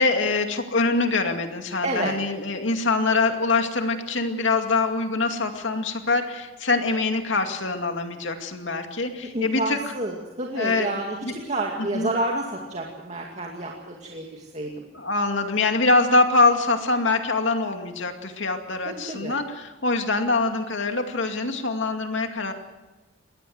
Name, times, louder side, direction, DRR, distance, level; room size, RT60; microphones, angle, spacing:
voice 1, 0.0-9.8 10.6-10.9 11.2-11.3 11.9-12.1 14.9-22.5, left 3 dB, 70° left, 5 dB, 2.4 m, -24 dB
voice 2, 1.8-2.1 9.3-11.2 11.4-14.7 18.9-19.4, right 2 dB, 35° right, -1 dB, 2.4 m, -29 dB
22.0 x 17.5 x 8.0 m, 1.2 s
head